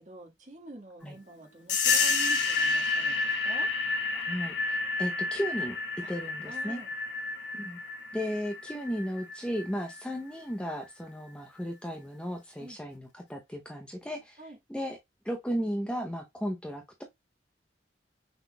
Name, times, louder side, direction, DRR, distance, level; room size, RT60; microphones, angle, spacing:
voice 1, 0.0-3.7 6.0-6.1 6.4-6.9 12.6-12.8 14.4-14.6, right 2 dB, 40° right, 1.6 m, -46 dB
sound 1, 1.7-10.0, left 4 dB, 75° left, 1.2 m, -30 dB
voice 2, 4.1-5.8 6.1-6.8 7.5-7.8 8.1-14.4 14.7-15.0 15.2-17.0, equal, 5° left, 0.7 m, -35 dB
5.9 x 3.6 x 2.2 m
head